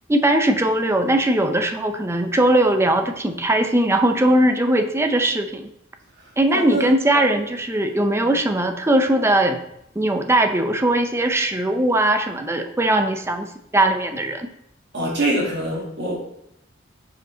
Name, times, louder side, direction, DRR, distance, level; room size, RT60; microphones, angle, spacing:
voice 1, 0.1-5.7 6.4-9.6 10.0-13.5 13.7-14.5, right 1 dB, 15° right, 6 dB, 0.5 m, -19 dB
voice 2, 6.5-6.9 8.1-8.3 14.9-16.2, right 1 dB, 60° right, -3 dB, 1.9 m, -24 dB
5.2 x 4.8 x 3.8 m, 0.80 s
head